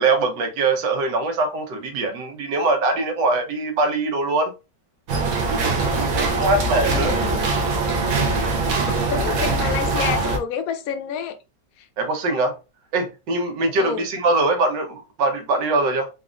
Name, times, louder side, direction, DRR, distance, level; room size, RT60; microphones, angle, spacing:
voice 1, 0.0-4.5 5.5-7.2 12.0-12.6 12.9-16.1, right 3 dB, 85° right, 1.5 m, -22 dB
sound 1, 5.1-10.4, right 3 dB, 60° right, 1.0 m, -22 dB
voice 2, 6.8-7.5 8.8-11.4 13.8-14.0, left 7 dB, 70° left, 0.9 m, -29 dB
4.0 x 2.4 x 2.4 m
omnidirectional pair, 1.9 m